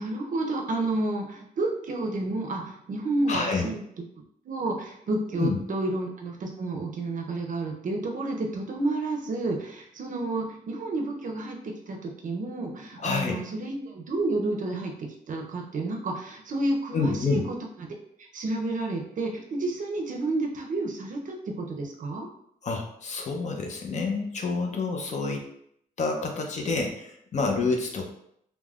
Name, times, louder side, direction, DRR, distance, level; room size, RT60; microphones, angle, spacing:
voice 1, 0.0-3.8 4.4-22.3, right 2 dB, 55° right, 2 dB, 0.5 m, -30 dB
voice 2, 3.3-3.7 5.4-5.6 13.0-13.4 16.9-17.4 22.6-25.4 26.0-28.1, left 4 dB, 50° left, 2 dB, 0.5 m, -28 dB
3.4 x 2.0 x 2.3 m, 0.70 s
cardioid pair, 100°, 16 cm